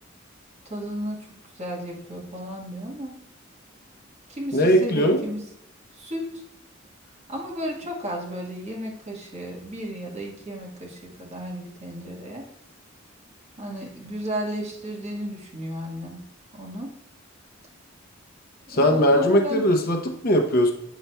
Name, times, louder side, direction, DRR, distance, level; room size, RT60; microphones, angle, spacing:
voice 1, 0.7-1.2 1.5-3.2 4.3-5.4 5.9-6.4 7.3-12.4 13.6-16.2 16.5-16.9 18.7-19.7, equal, 35° right, -2 dB, 1.3 m, -33 dB
voice 2, 4.5-5.2 18.7-20.7, equal, 45° left, 2 dB, 0.7 m, -20 dB
8.0 x 5.8 x 2.2 m, 0.76 s
head